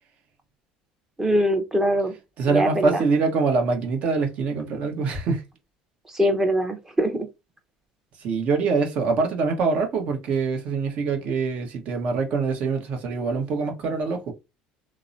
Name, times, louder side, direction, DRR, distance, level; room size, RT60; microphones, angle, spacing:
voice 1, 1.2-2.1 2.5-3.0 6.1-7.3, equal, 15° right, 0.7 m, -22 dB
voice 2, 2.4-5.4 8.2-14.3, right 4 dB, 55° right, 0.9 m, -24 dB
2.9 x 2.0 x 2.5 m
supercardioid pair, 110°, 3 cm